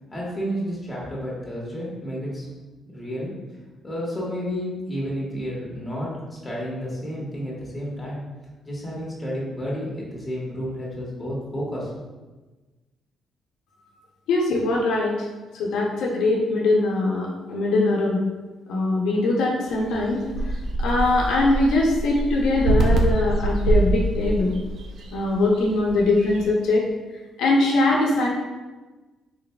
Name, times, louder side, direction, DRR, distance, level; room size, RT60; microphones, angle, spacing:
voice 1, 0.1-2.5 2.9-3.3 3.8-8.2 8.6-11.9, equal, 15° left, -5 dB, 1.5 m, -31 dB
voice 2, 14.3-15.3 15.5-18.2 18.7-24.5 25.1-26.8 27.4-28.3, left 2 dB, 85° left, -2 dB, 0.6 m, -22 dB
sound 1, 19.7-26.5, right 2 dB, 65° right, 0.6 m, -25 dB
4.0 x 3.9 x 2.3 m, 1.2 s
cardioid pair, 90°, 0 cm